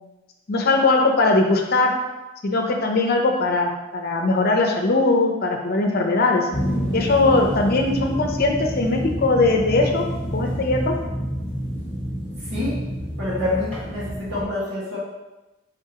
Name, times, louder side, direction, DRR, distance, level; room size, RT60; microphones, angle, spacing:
voice 1, 0.5-1.9 2.4-6.5 6.9-10.0 10.3-10.9, left 3 dB, 50° left, 2 dB, 0.6 m, -20 dB
sound 1, 6.5-14.4, equal, 10° left, 1.5 m, -28 dB
voice 2, 13.2-15.0, left 2 dB, 65° right, -9 dB, 1.4 m, -27 dB
4.8 x 3.6 x 2.8 m, 1.0 s
head